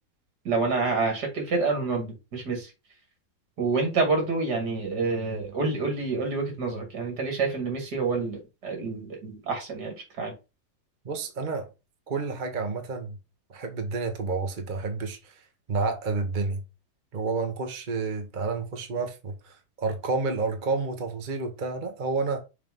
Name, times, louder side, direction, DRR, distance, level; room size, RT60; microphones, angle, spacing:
voice 1, 0.4-2.7 3.6-10.3, right 4 dB, 65° right, 2.9 m, -28 dB
voice 2, 11.0-11.7 12.1-13.2 13.5-15.4 15.7-16.6 17.1-22.4, right 4 dB, 30° right, 1.1 m, -30 dB
6.6 x 3.4 x 5.3 m
omnidirectional pair, 1.9 m